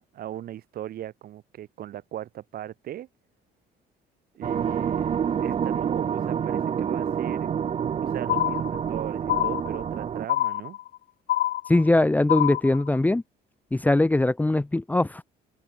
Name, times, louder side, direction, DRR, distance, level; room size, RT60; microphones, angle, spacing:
voice 1, 0.0-3.1 4.3-7.5 8.0-10.8, right 12 dB, 60° right, 3.3 m, -38 dB
sound 1, 4.4-10.3, right 8 dB, 35° right, 0.7 m, -28 dB
sound 2, 8.3-9.0 9.3-10.0 10.3-11.0 11.3-12.0 12.3-13.0, left 13 dB, 70° left, 2.4 m, -26 dB
voice 2, 11.7-13.2 13.7-15.2, left 2 dB, 10° left, 1.0 m, -21 dB
open air
cardioid pair, 110°, 17 cm